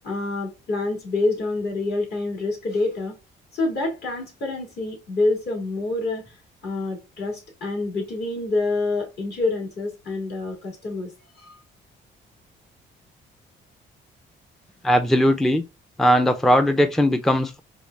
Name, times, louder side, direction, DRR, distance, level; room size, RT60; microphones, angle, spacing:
voice 1, 0.0-3.2 3.5-6.2 6.6-11.1 11.4-11.6, left 2 dB, 55° left, 2.0 m, -27 dB
voice 2, 14.8-15.6 16.0-17.6, equal, ahead, 0.4 m, -19 dB
4.8 x 2.4 x 2.2 m
cardioid pair, 90°, 20 cm